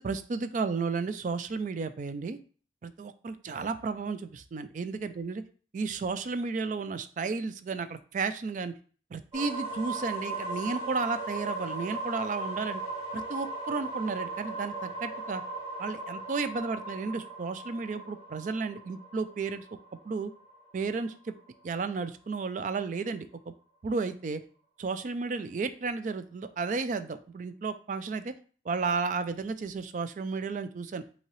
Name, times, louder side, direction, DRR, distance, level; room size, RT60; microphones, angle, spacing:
voice 1, 0.0-2.4 2.8-5.4 5.7-8.7 9.1-12.8 13.1-15.4 15.8-19.6 20.0-20.3 20.7-21.3 21.6-23.5 23.8-24.4 24.8-28.3 28.7-31.0, right 4 dB, 40° right, 11 dB, 0.3 m, -33 dB
sound 1, 9.3-21.1, right 2 dB, 25° right, 2.1 m, -38 dB
5.6 x 2.8 x 3.0 m, 0.42 s
head